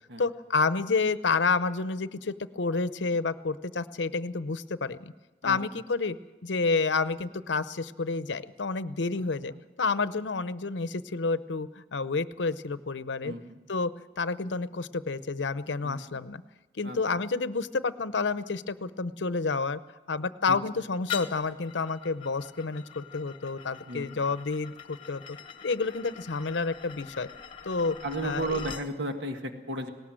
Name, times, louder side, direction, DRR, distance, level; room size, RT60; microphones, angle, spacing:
voice 1, 0.2-5.1 5.4-6.2 6.4-13.3 13.7-13.9 14.2-16.4 16.8-19.8 20.1-25.4 25.6-27.3 27.6-28.0 28.2-28.6, left 4 dB, 80° left, 14 dB, 0.7 m, -29 dB
voice 2, 13.2-13.6 15.8-16.0 16.8-17.0 20.5-20.6 23.9-24.2 28.0-29.9, right 2 dB, 75° right, 5 dB, 1.7 m, -34 dB
sound 1, 21.1-28.9, left 8 dB, 30° left, 1.0 m, -43 dB
19.0 x 18.5 x 7.6 m, 1.2 s
head